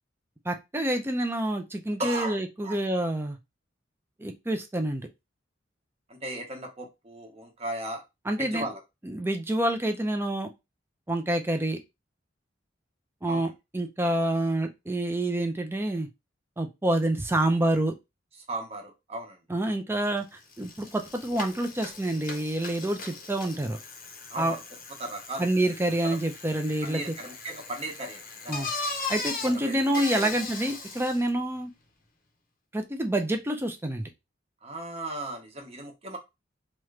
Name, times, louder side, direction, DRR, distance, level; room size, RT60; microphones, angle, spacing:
voice 1, 0.5-3.4 4.2-5.1 8.3-8.6 9.0-10.5 11.1-11.8 13.2-16.1 16.6-17.9 19.5-23.8 24.4-24.6 25.4-27.0 28.5-28.7 29.1-31.7 32.7-34.1, right 1 dB, 10° right, 5 dB, 0.5 m, -27 dB
voice 2, 2.0-2.8 6.1-8.0 8.4-8.8 13.3-13.5 18.5-19.4 24.3-24.6 25.0-25.8 26.0-26.2 26.8-28.6 29.4-30.3 34.6-36.2, right 2 dB, 35° right, 2 dB, 0.9 m, -36 dB
Bicycle, 20.2-20.3 20.5-31.3, left 4 dB, 45° left, 0.7 m, -39 dB
3.0 x 2.4 x 3.2 m, 0.23 s
head